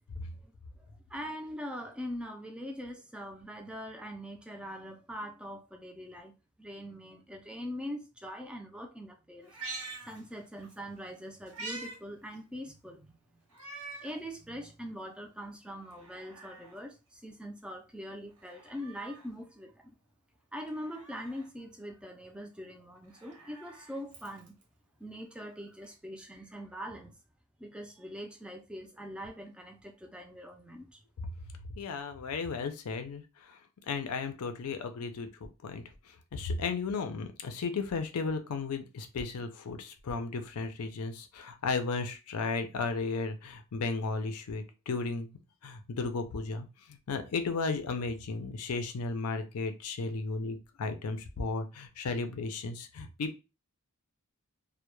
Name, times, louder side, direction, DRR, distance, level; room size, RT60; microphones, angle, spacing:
voice 1, 0.1-6.3 6.6-9.5 10.0-13.4 14.0-19.9 20.5-24.5 25.0-27.1 27.6-31.0, equal, 5° right, 0.3 m, -43 dB
Meow, 9.4-10.8 11.1-12.0 12.3-12.4 13.5-14.2 14.7-14.8 15.8-16.8 18.3-19.3 20.7-21.5 23.0-24.6 25.8-25.9, right 3 dB, 80° right, 0.8 m, -46 dB
voice 2, 31.8-33.6 33.9-35.3 35.6-35.8 36.3-45.3 45.6-53.4, left 4 dB, 80° left, 0.4 m, -34 dB
2.1 x 2.0 x 3.0 m
head